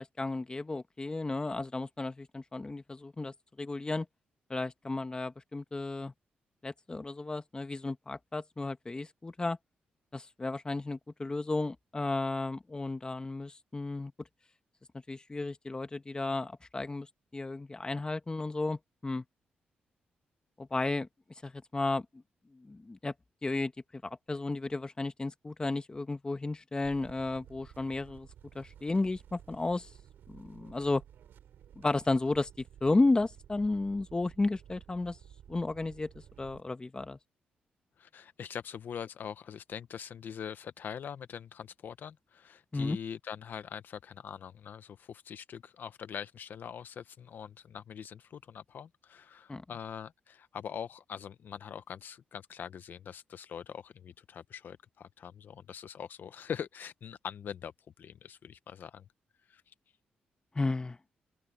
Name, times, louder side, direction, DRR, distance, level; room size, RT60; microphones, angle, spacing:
voice 1, 0.0-4.1 4.5-6.1 6.6-9.6 10.1-14.1 15.1-17.1 17.3-19.2 20.6-21.1 21.4-22.0 22.5-23.1 23.4-23.7 24.0-28.3 28.5-29.9 30.3-31.0 31.7-32.5 32.8-35.2 35.5-36.1 36.4-37.2 42.7-43.0 49.5-49.6 60.5-61.0, left 2 dB, 25° left, 1.4 m, -33 dB
sound 1, 26.8-36.6, right 10 dB, 80° right, 8.0 m, -55 dB
voice 2, 38.0-57.7 58.0-59.0 59.5-59.7, left 8 dB, 65° left, 0.8 m, -43 dB
open air
cardioid pair, 65°, 3 cm